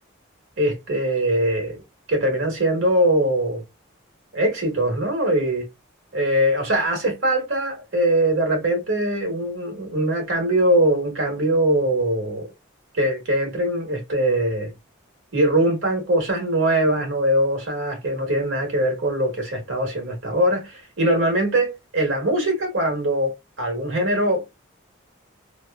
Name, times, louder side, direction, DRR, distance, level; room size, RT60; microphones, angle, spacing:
voice 1, 0.6-1.8 2.1-3.6 4.3-5.7 6.1-12.5 12.9-14.7 15.3-24.5, right 1 dB, 65° right, 1.2 m, -22 dB
2.8 x 2.2 x 2.3 m
head